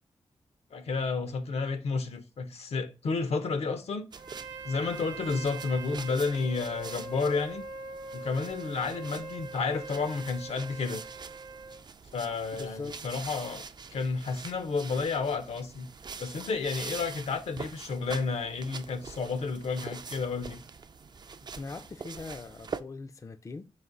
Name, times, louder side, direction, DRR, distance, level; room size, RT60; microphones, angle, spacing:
voice 1, 0.7-4.1 4.6-7.6 8.1-11.0 12.1-13.6 13.9-15.9 16.2-20.6, left 4 dB, 70° left, 0.6 m, -31 dB
sound 1, 4.1-22.8, right 5 dB, 40° right, 0.3 m, -45 dB
Trumpet, 4.2-11.8, right 3 dB, 70° right, 0.8 m, -42 dB
voice 2, 12.5-13.0 21.6-23.7, left 3 dB, 30° left, 0.3 m, -41 dB
4.1 x 2.6 x 3.7 m
cardioid pair, 55°, 11 cm